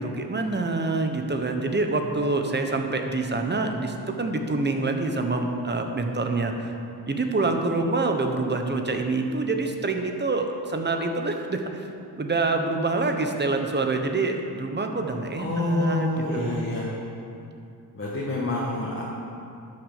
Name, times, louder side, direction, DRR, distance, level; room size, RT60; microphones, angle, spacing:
voice 1, 0.0-6.5 7.1-11.9 12.2-16.8, right 3 dB, 25° right, 4 dB, 1.1 m, -26 dB
voice 2, 15.4-16.9 17.9-19.0, left 2 dB, 30° left, -5 dB, 1.7 m, -27 dB
11.5 x 6.5 x 6.7 m, 2.6 s
cardioid pair, 100°, 40 cm